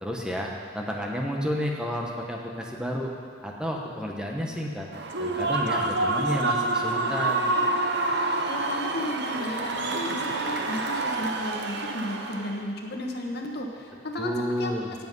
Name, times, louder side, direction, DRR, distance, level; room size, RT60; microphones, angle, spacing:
voice 1, 0.0-3.1 3.4-4.9 5.2-7.5 14.2-14.9, equal, 5° right, -1 dB, 1.2 m, -31 dB
Human voice / Cheering / Applause, 4.9-12.6, right 2 dB, 65° right, 1.0 m, -27 dB
voice 2, 8.4-14.7, left 1 dB, 60° left, 1 dB, 1.5 m, -33 dB
17.5 x 7.7 x 5.5 m, 2.1 s
head